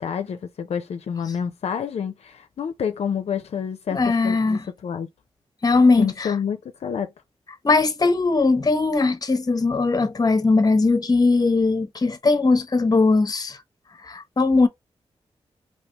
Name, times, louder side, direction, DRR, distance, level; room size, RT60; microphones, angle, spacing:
voice 1, 0.0-5.1 6.0-7.1, left 7 dB, 70° left, 0.5 m, -28 dB
voice 2, 3.9-4.6 5.6-6.3 7.6-13.6 14.0-14.7, left 3 dB, 35° left, 0.8 m, -19 dB
3.3 x 2.8 x 2.9 m
cardioid pair, 55°, 11 cm